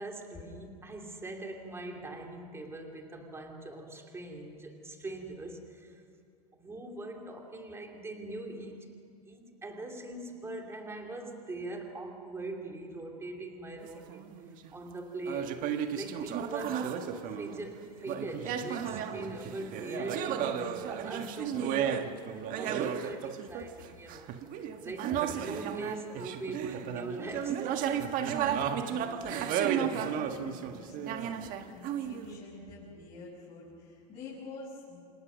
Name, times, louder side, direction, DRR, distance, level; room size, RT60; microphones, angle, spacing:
voice 1, 0.0-6.0 6.5-9.0 9.3-14.3 14.7-15.6 15.9-28.1 29.4-29.5, right 2 dB, 10° right, 2 dB, 2.9 m, -42 dB
sound 1, 13.8-14.7 15.3-17.7 18.0-32.4, right 8 dB, 40° right, 1.5 m, -33 dB
voice 2, 28.8-35.0, left 3 dB, 25° left, -7 dB, 7.4 m, -47 dB
28.0 x 27.5 x 6.4 m, 2.3 s
supercardioid pair, 130°, 21 cm